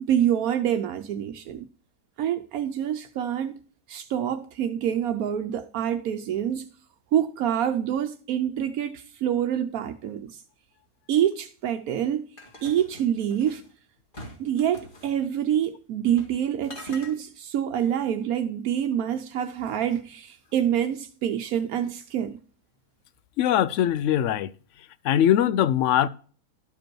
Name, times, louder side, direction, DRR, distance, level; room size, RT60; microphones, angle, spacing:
voice 1, 0.0-1.7 2.2-3.5 3.9-6.7 7.1-10.4 11.1-12.2 12.6-13.6 14.4-22.4, right 10 dB, 80° right, 1.1 m, -26 dB
sound 1, 12.4-13.7 14.1-15.1 16.1-16.4 16.6-17.1, left 1 dB, 35° left, 2.1 m, -43 dB
voice 2, 23.4-24.5 25.0-26.1, left 11 dB, 70° left, 0.8 m, -21 dB
12.0 x 5.1 x 4.5 m
omnidirectional pair, 1.5 m